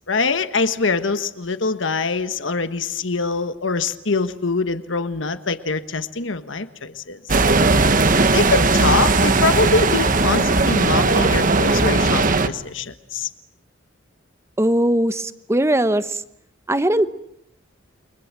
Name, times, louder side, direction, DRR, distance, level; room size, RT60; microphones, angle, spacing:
voice 1, 0.1-7.4 8.3-13.3, left 4 dB, 70° left, 11 dB, 1.4 m, -23 dB
sound 1, 7.3-12.5, right 3 dB, 45° right, 1.4 m, -17 dB
voice 2, 14.6-16.2 16.7-17.1, right 1 dB, 15° right, 12 dB, 1.0 m, -19 dB
29.5 x 24.0 x 7.5 m, 0.73 s
head